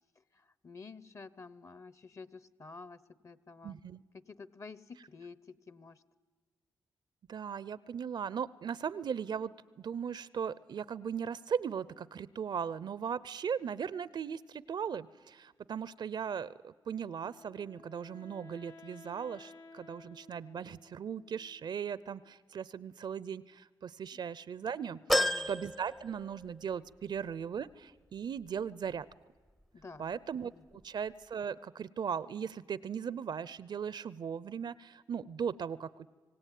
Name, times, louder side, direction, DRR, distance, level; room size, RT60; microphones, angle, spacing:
voice 1, 0.6-3.8 4.3-6.0 24.1-24.2 25.1-25.5 29.7-30.1 30.5-30.6, left 4 dB, 40° left, 17 dB, 1.0 m, -50 dB
voice 2, 3.6-4.0 7.3-29.1 30.0-30.5 30.8-36.1, right 7 dB, 65° right, 19 dB, 0.6 m, -38 dB
Wind instrument woodwind instrument, 17.0-22.0, left 3 dB, 65° left, 3.1 m, -56 dB
sound 1, 25.1-26.7 27.2-27.3 28.5-28.6, left 1 dB, 5° left, 0.6 m, -32 dB
25.5 x 17.5 x 9.3 m, 1.4 s
cardioid pair, 70°, 8 cm